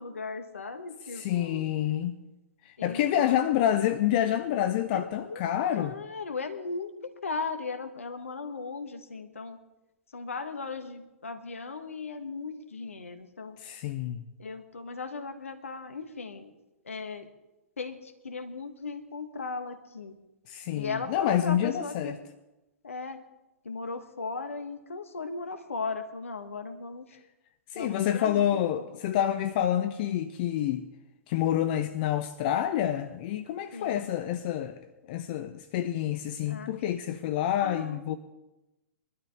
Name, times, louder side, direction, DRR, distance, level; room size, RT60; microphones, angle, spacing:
voice 1, 0.0-1.7 2.8-3.4 4.9-5.4 5.8-9.6 10.1-13.6 14.4-16.5 16.9-17.3 17.8-20.1 20.7-22.2 22.8-23.2 23.6-27.1 27.7-28.8 33.7-34.1 36.5-36.7 37.6-38.0, left 4 dB, 70° left, 1.4 m, -37 dB
voice 2, 1.0-2.2 2.7-5.9 13.6-14.2 20.5-22.2 27.7-30.8 31.3-34.8 35.1-38.2, left 11 dB, 40° left, 0.6 m, -28 dB
21.5 x 12.5 x 3.7 m
figure-of-eight pair, 105°, 8 cm